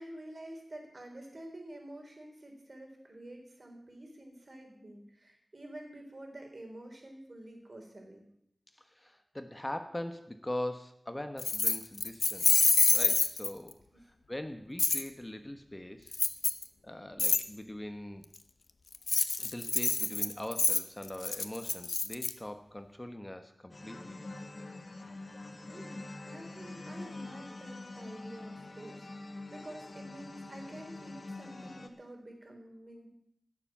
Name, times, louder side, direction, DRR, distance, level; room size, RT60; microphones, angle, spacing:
voice 1, 0.0-8.3 13.9-14.0 25.7-33.1, right 1 dB, 50° right, 2 dB, 3.9 m, -49 dB
voice 2, 8.8-13.8 14.1-16.2 16.8-18.3 19.4-24.2, left 1 dB, 20° left, 7 dB, 1.1 m, -41 dB
Keys jangling, 11.4-13.7 14.8-15.0 16.1-16.6 17.2-17.4 18.9-22.3, left 4 dB, 80° left, 0.7 m, -27 dB
sound 1, 23.7-31.9, left 2 dB, 55° left, 1.4 m, -45 dB
16.0 x 7.2 x 7.4 m, 0.73 s
wide cardioid pair, 55°, 0 cm